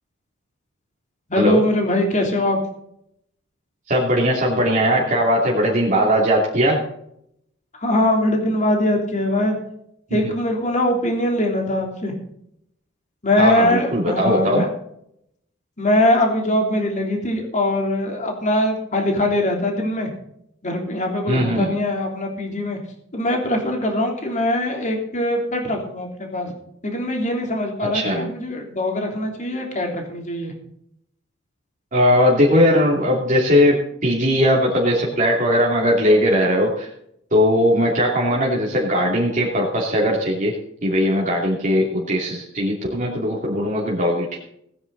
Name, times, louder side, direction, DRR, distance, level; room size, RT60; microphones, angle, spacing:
voice 1, 1.3-2.6 7.7-9.5 10.1-12.1 13.2-14.7 15.8-20.1 20.6-22.8 23.1-26.5 26.8-30.5, left 1 dB, 35° left, 1 dB, 3.3 m, -22 dB
voice 2, 3.9-6.8 10.1-10.2 13.4-14.7 21.3-21.7 27.8-28.3 31.9-36.9 37.3-44.4, equal, 40° right, -3 dB, 2.8 m, -19 dB
19.0 x 10.0 x 4.0 m, 0.73 s
head